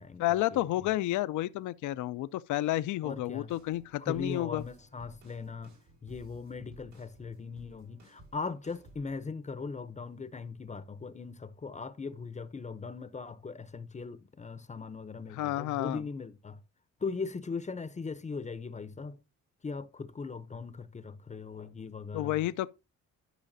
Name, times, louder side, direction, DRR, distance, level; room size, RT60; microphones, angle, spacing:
voice 1, 0.2-4.6 15.3-16.0 22.1-22.7, left 15 dB, 80° left, 0.5 m, -31 dB
voice 2, 3.0-3.5 4.0-5.8 6.0-16.6 17.0-19.2 19.6-22.4, left 4 dB, 25° left, 0.6 m, -39 dB
sound 1, 3.5-9.2, right 1 dB, 80° right, 4.4 m, -57 dB
12.5 x 5.7 x 2.7 m
cardioid pair, 90°, 30 cm